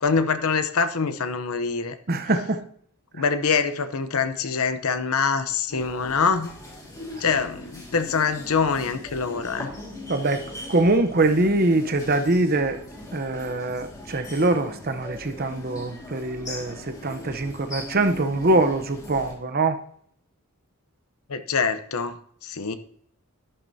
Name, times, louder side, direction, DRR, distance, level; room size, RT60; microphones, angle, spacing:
voice 1, 0.0-2.0 3.1-6.5 7.2-9.7 21.3-22.2 22.4-22.7, left 5 dB, 75° left, 0.8 m, -24 dB
voice 2, 2.1-2.7 10.1-12.8 13.1-19.8, right 2 dB, 45° right, 0.8 m, -23 dB
sound 1, 5.7-19.4, left 2 dB, 15° left, 2.0 m, -40 dB
11.0 x 10.5 x 2.8 m
head